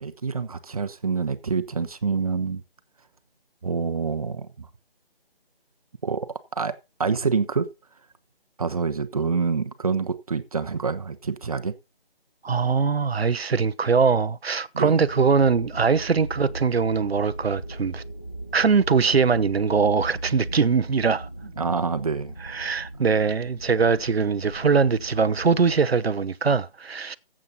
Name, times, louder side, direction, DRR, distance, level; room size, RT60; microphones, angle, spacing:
voice 1, 0.0-2.6 3.6-4.7 6.0-6.3 6.5-6.7 7.0-7.7 8.6-11.7 14.7-15.0 21.6-22.3, right 5 dB, 35° right, 1.0 m, -26 dB
voice 2, 12.4-18.0 18.5-21.3 22.4-27.2, right 5 dB, 80° right, 0.8 m, -22 dB
sound 1, 15.0-25.8, right 1 dB, 20° left, 0.5 m, -38 dB
15.0 x 7.6 x 4.0 m
figure-of-eight pair, 165°, 30 cm